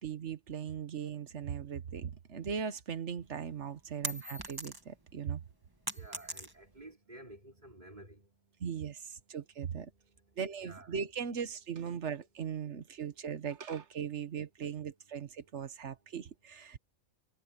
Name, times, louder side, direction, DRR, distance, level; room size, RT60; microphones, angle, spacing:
voice 1, 0.0-5.4 8.6-9.9 10.4-16.8, right 7 dB, 65° right, 1.4 m, -39 dB
sound 1, 3.2-5.1 5.4-6.9, right 1 dB, 20° right, 1.7 m, -40 dB
voice 2, 5.9-11.3 15.4-15.5, right 1 dB, 35° right, 3.5 m, -55 dB
omnidirectional pair, 1.3 m